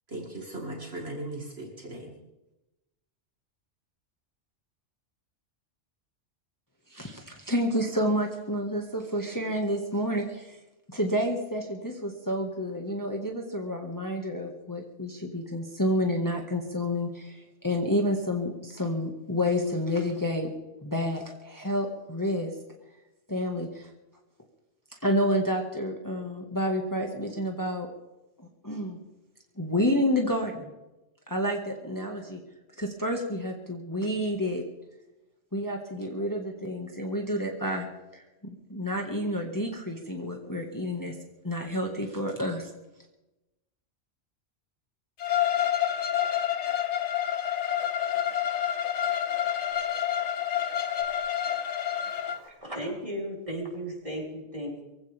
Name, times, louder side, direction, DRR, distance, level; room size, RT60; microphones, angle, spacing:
voice 1, 0.1-2.2, right 1 dB, 60° right, 1 dB, 2.3 m, -38 dB
voice 2, 6.9-10.6 10.9-20.5 20.8-22.5 23.3-23.9 25.0-27.9 28.4-29.0 29.6-30.7 31.3-32.4 32.8-34.6 35.5-37.9 38.1-41.1 41.4-42.7, equal, 15° left, 1 dB, 1.8 m, -29 dB
Bowed string instrument, 45.2-52.4, left 10 dB, 75° left, 1.1 m, -28 dB
voice 3, 52.1-54.8, equal, 30° right, -4 dB, 5.4 m, -36 dB
23.0 x 16.5 x 3.5 m, 0.99 s
omnidirectional pair, 1.2 m